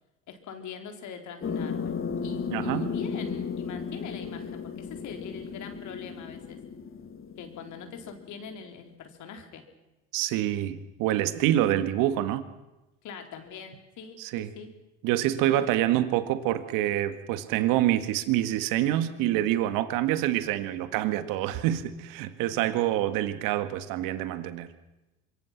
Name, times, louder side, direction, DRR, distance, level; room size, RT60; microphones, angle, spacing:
voice 1, 0.3-2.0 2.2-6.6 7.4-9.6 13.0-14.7 15.5-15.6, left 6 dB, 60° left, 5 dB, 4.2 m, -43 dB
sound 1, 1.4-8.6, left 6 dB, 35° left, 1.9 m, -35 dB
voice 2, 2.5-2.9 10.1-12.5 14.2-14.5 15.0-24.7, right 13 dB, 70° right, 11 dB, 1.9 m, -26 dB
25.0 x 23.0 x 6.0 m, 1.0 s
hypercardioid pair, 75°, 34 cm